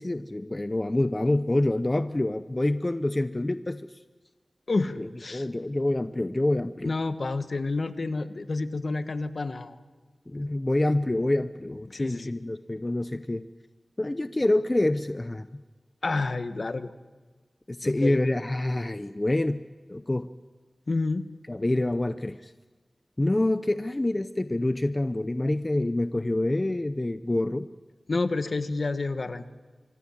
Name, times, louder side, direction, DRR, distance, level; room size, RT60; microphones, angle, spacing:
voice 1, 0.0-3.9 5.0-7.0 10.3-13.5 14.0-15.5 17.7-19.6 19.9-20.3 21.5-22.5 23.2-27.7, left 1 dB, 25° left, 11 dB, 0.7 m, -27 dB
voice 2, 4.7-5.5 6.8-9.8 11.9-12.3 16.0-16.9 17.8-18.2 20.9-21.2 28.1-29.5, left 3 dB, 55° left, 11 dB, 1.4 m, -29 dB
26.0 x 24.0 x 7.3 m, 1.3 s
wide cardioid pair, 90°, 0 cm